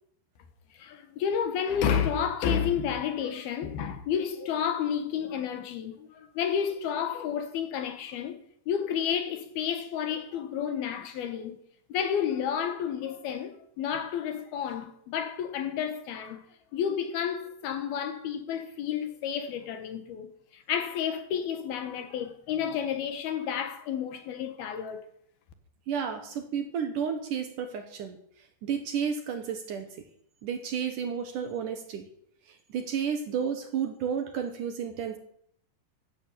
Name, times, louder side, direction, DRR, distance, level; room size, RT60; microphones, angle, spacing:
voice 1, 0.8-8.4 8.7-11.6 11.9-16.4 16.7-25.0, left 8 dB, 70° left, 3.2 m, -31 dB
voice 2, 25.9-30.0 30.4-32.1 32.5-35.2, right 7 dB, 60° right, 2.5 m, -32 dB
15.0 x 11.0 x 8.6 m
omnidirectional pair, 4.8 m